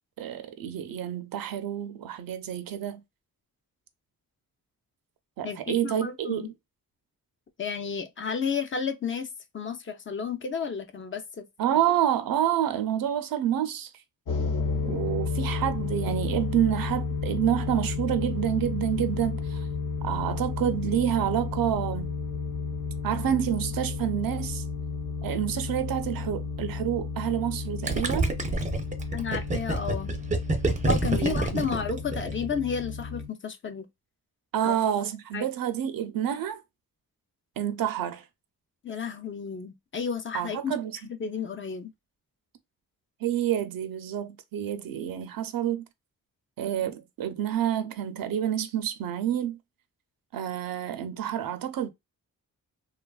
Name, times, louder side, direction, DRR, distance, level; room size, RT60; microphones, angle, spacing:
voice 1, 0.2-3.0 5.4-6.5 11.6-14.0 14.8-19.7 20.0-22.1 23.0-24.6 25.2-28.3 31.1-31.9 34.5-36.6 37.6-38.3 40.3-41.0 43.2-45.8 46.6-49.6 50.3-51.9, right 10 dB, 75° right, 0.5 m, -28 dB
voice 2, 5.8-6.5 7.6-11.4 29.1-30.1 30.9-33.9 34.6-34.8 35.3-35.5 38.8-40.7 41.2-41.9, left 6 dB, 35° left, 0.4 m, -32 dB
sound 1, 14.3-33.3, left 4 dB, 65° left, 0.8 m, -32 dB
Gurgling, 27.9-32.5, right 2 dB, 20° right, 0.5 m, -27 dB
2.9 x 2.2 x 2.3 m
wide cardioid pair, 120°, 35 cm